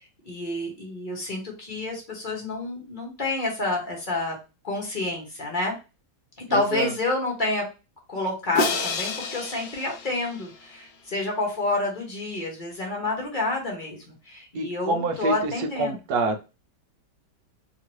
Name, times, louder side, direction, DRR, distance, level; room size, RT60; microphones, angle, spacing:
voice 1, 0.3-4.4 4.6-5.8 6.5-7.6 8.1-16.0, left 2 dB, 35° left, 0 dB, 0.9 m, -29 dB
voice 2, 6.5-6.9 14.5-16.4, right 2 dB, 70° right, 6 dB, 1.0 m, -27 dB
Crash cymbal, 8.6-10.8, left 4 dB, 70° left, 1.1 m, -29 dB
2.9 x 2.9 x 3.0 m, 0.29 s
omnidirectional pair, 1.9 m